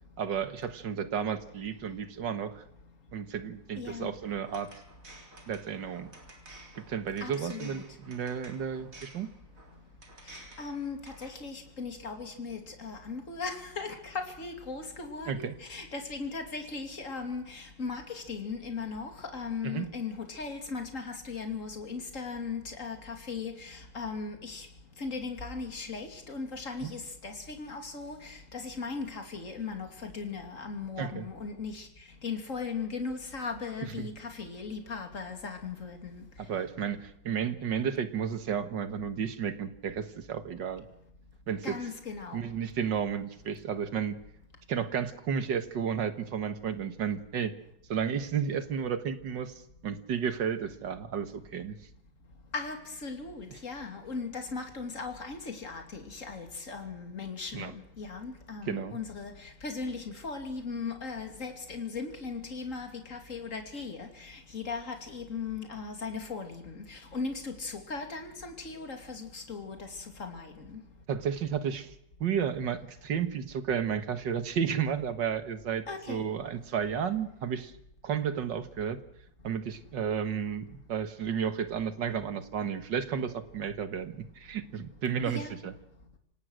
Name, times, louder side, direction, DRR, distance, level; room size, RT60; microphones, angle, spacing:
voice 1, 0.2-2.6 3.1-4.7 5.5-6.1 6.8-9.3 15.3-15.5 19.6-19.9 26.8-26.9 31.0-31.3 34.0-34.1 36.5-40.9 41.5-41.8 42.3-44.2 44.7-47.5 47.9-51.8 57.5-57.7 58.7-59.0 71.1-71.9 72.2-77.7 78.0-79.0 79.4-85.7, right 7 dB, 75° right, 2.1 m, -32 dB
voice 2, 3.8-4.1 7.2-7.8 10.3-24.7 25.0-31.9 32.2-36.2 41.6-42.5 52.5-70.8 75.9-76.2 85.2-85.5, left 4 dB, 45° left, 3.1 m, -38 dB
sound 1, 4.1-11.4, right 2 dB, 45° right, 4.1 m, -53 dB
27.0 x 18.0 x 6.4 m
omnidirectional pair, 2.0 m